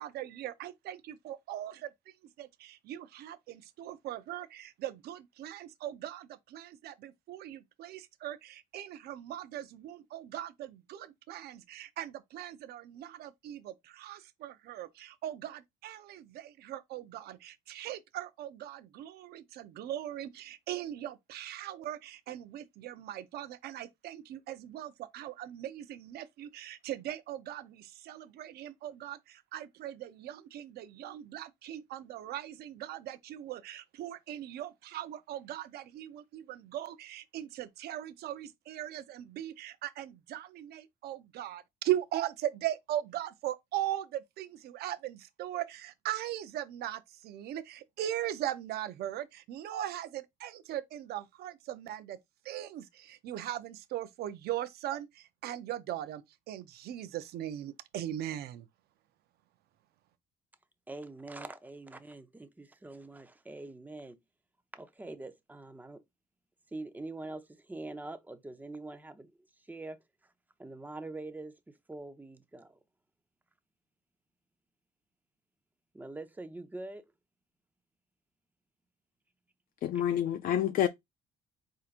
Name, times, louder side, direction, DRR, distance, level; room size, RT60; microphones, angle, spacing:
voice 1, 0.0-52.2 52.4-58.7, right 12 dB, 70° right, 0.6 m, -39 dB
voice 2, 60.9-64.2 64.7-66.0 66.7-69.3 69.7-70.3 70.6-72.8 75.9-77.1, right 2 dB, 10° right, 0.6 m, -44 dB
voice 3, 79.8-80.9, left 10 dB, 55° left, 0.4 m, -28 dB
4.4 x 3.7 x 2.5 m
cardioid pair, 110°, 17 cm